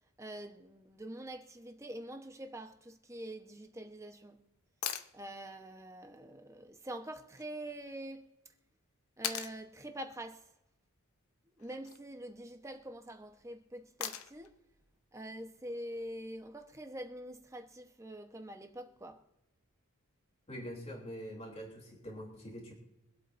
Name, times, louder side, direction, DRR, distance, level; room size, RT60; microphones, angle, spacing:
voice 1, 0.2-4.4 5.1-8.3 9.2-10.5 11.5-14.5 15.1-19.2, right 1 dB, 15° right, 1.0 m, -45 dB
Nail clippers falling, 4.8-5.1 7.4-7.5 9.2-9.6 11.6-12.0 14.0-14.5 16.6-16.7, left 9 dB, 80° left, 0.8 m, -38 dB
voice 2, 20.5-22.7, equal, 30° left, 3.3 m, -44 dB
24.5 x 8.4 x 2.7 m
head